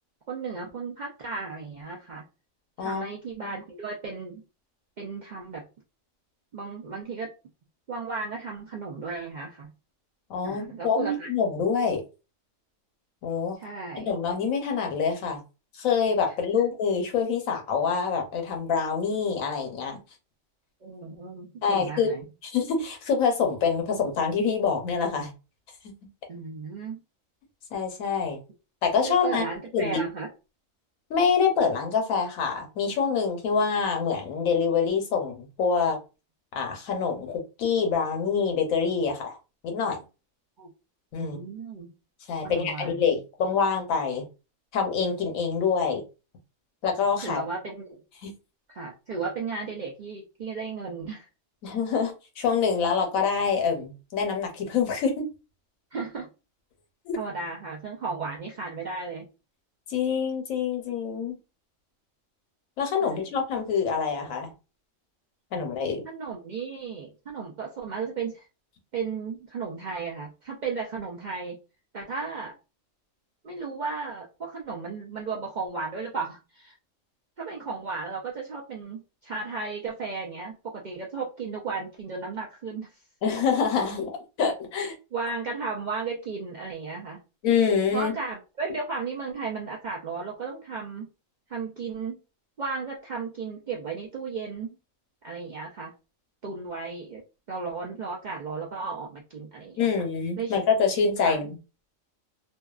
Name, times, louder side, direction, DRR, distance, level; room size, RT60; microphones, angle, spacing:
voice 1, 0.3-2.2 2.8-4.4 5.0-5.6 6.5-7.3 7.9-9.7 10.4-11.3 13.6-14.1 16.5-16.6 20.8-22.2 26.3-27.0 29.0-30.3 40.6-40.7 41.2-41.9 42.4-43.1 47.2-47.9 48.7-51.3 55.9-56.3 57.1-59.3 63.0-63.3 65.5-65.7 66.0-68.4 68.9-71.6 71.9-72.5 73.4-76.8 77.4-82.9 85.1-87.2 87.9-91.1 91.5-92.2 92.6-94.8 95.2-95.9 96.4-97.2 97.5-99.8 100.4-100.6 101.2-101.5, right 4 dB, 80° right, 0.4 m, -34 dB
voice 2, 10.3-12.0 13.2-13.6 14.0-15.4 15.7-20.0 21.6-22.2 22.4-25.3 27.7-28.4 28.8-29.4 29.7-30.0 31.1-36.0 36.5-39.4 39.6-40.0 41.1-41.4 42.3-44.3 44.7-46.0 46.8-47.4 48.2-48.3 51.6-55.3 57.0-57.2 59.9-61.4 62.8-64.5 65.5-66.0 83.2-84.9 87.4-88.1 99.8-101.6, left 6 dB, 80° left, 1.1 m, -26 dB
2.7 x 2.2 x 2.3 m
omnidirectional pair, 1.4 m